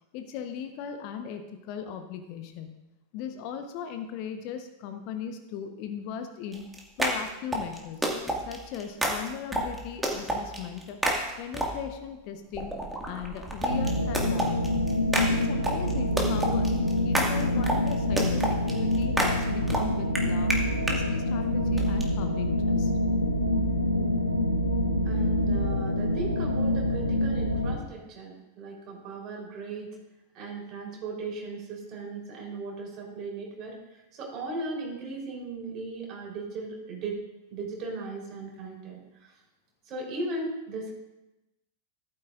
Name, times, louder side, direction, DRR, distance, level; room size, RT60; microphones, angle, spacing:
voice 1, 0.1-2.8 3.1-6.7 7.0-8.1 8.5-11.0 11.4-12.8 13.1-14.9 15.3-20.5 20.9-22.9, left 8 dB, 45° left, 7 dB, 1.0 m, -38 dB
sound 1, 6.5-12.0 12.5-21.0 21.8-22.0, right 1 dB, 5° right, 1.9 m, -30 dB
sound 2, 13.7-27.8, left 1 dB, 85° left, 0.9 m, -26 dB
voice 2, 25.0-30.0 30.3-37.2 37.5-39.4 39.8-40.9, right 3 dB, 35° right, -1 dB, 3.8 m, -37 dB
13.5 x 12.0 x 2.5 m, 0.97 s
figure-of-eight pair, 90°, 0 cm